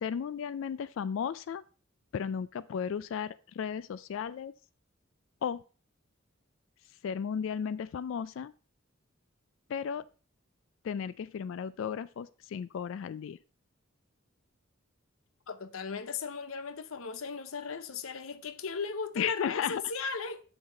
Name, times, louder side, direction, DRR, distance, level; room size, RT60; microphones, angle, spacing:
voice 1, 0.0-1.6 2.1-4.5 5.4-5.6 7.0-8.5 9.7-10.0 10.8-13.4 19.2-19.8, left 7 dB, 70° left, 0.3 m, -34 dB
voice 2, 15.5-20.4, left 5 dB, 90° left, 0.7 m, -37 dB
6.9 x 6.3 x 3.8 m
head